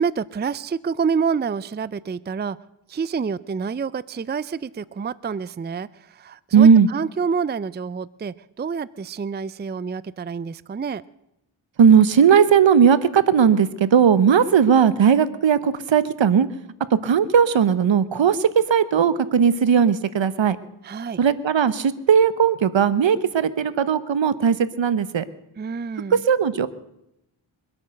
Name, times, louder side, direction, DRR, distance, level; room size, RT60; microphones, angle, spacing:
voice 1, 0.0-2.6 2.9-11.0 20.8-21.2 25.6-26.2, right 6 dB, 20° right, 0.5 m, -28 dB
voice 2, 6.5-6.9 11.8-16.5 17.0-20.6 21.2-25.2 26.3-26.7, right 7 dB, 65° right, 1.1 m, -17 dB
23.5 x 8.6 x 6.4 m
cardioid pair, 50°, 48 cm